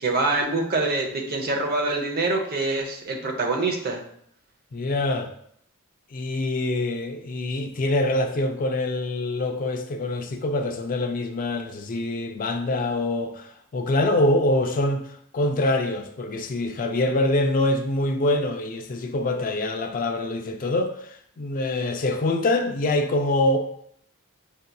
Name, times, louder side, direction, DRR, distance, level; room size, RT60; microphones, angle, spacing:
voice 1, 0.0-4.0, right 3 dB, 45° right, 0.7 m, -25 dB
voice 2, 4.7-5.3 6.1-15.0 15.3-23.6, left 2 dB, 40° left, 0.4 m, -25 dB
6.2 x 2.7 x 2.2 m
head